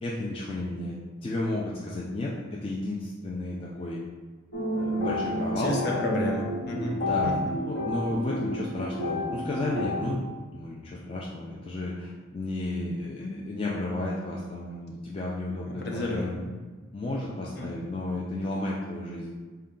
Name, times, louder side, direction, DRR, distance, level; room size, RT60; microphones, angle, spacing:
voice 1, 0.0-1.0 1.2-4.0 4.7-5.8 6.9-7.4 7.7-10.3 10.5-16.4 16.9-19.3, left 2 dB, 25° left, -5 dB, 0.3 m, -32 dB
sound 1, 4.5-10.0, left 1 dB, 70° left, 1.1 m, -30 dB
voice 2, 5.6-7.0 7.2-7.3 13.2-13.3 15.8-16.4 17.6-17.7, left 1 dB, 55° left, -1 dB, 0.7 m, -31 dB
4.4 x 2.2 x 3.7 m, 1.4 s
head